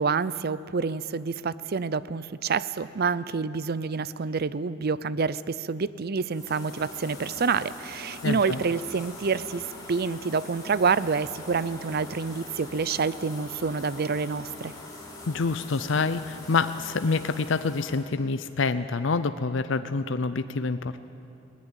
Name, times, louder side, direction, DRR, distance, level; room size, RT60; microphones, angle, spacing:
voice 1, 0.0-14.7, right 5 dB, 50° right, 17 dB, 0.6 m, -28 dB
sound 1, 6.3-18.0, left 2 dB, 20° left, 4.1 m, -43 dB
voice 2, 8.2-8.6 15.3-21.0, left 4 dB, 70° left, 12 dB, 0.6 m, -27 dB
20.5 x 18.0 x 9.0 m, 2.7 s
head